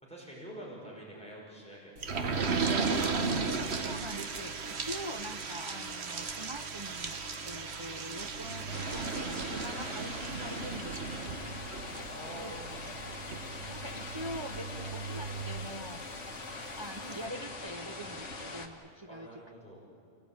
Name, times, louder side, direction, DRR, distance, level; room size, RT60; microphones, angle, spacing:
voice 1, 0.0-3.2 12.1-12.7 19.1-19.8, right 1 dB, 5° left, -4 dB, 5.3 m, -47 dB
sound 1, 2.0-16.3 16.8-16.9 17.1-17.2, right 4 dB, 65° right, 1.4 m, -36 dB
sound 2, 2.0-9.0, right 1 dB, 85° right, 2.0 m, -50 dB
voice 2, 3.8-7.2 7.4-11.0 12.3-12.6 12.8-16.1 16.7-19.3, equal, 25° right, 5 dB, 0.7 m, -44 dB
sound 3, 8.7-18.7, left 3 dB, 85° left, 2.1 m, -42 dB
29.5 x 17.0 x 8.8 m, 2.7 s
omnidirectional pair, 1.2 m